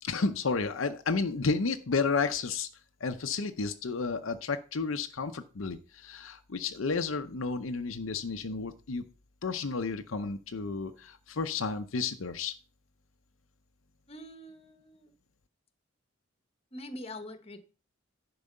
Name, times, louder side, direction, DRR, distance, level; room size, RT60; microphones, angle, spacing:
voice 1, 0.0-2.7 3.0-9.0 9.4-12.5, left 4 dB, 70° left, 7 dB, 0.7 m, -32 dB
voice 2, 14.1-15.1 16.7-17.6, left 1 dB, 30° left, 9 dB, 1.2 m, -44 dB
11.0 x 4.8 x 6.6 m, 0.36 s
head